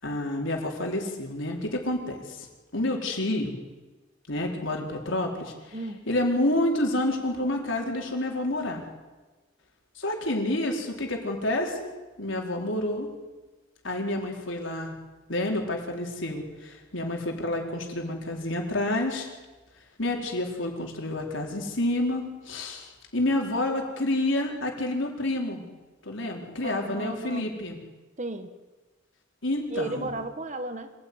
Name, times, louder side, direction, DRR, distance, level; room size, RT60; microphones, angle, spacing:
voice 1, 0.0-2.5 2.7-3.6 4.3-5.8 6.1-8.8 10.0-11.9 12.2-13.1 13.8-14.9 15.3-19.3 20.0-25.6 26.0-27.8 29.4-30.1, left 1 dB, 80° left, 1 dB, 4.5 m, -29 dB
voice 2, 5.7-6.0 26.6-27.5 28.2-28.5 29.7-30.9, right 2 dB, 40° right, 9 dB, 1.6 m, -34 dB
26.0 x 18.5 x 9.7 m, 1.2 s
head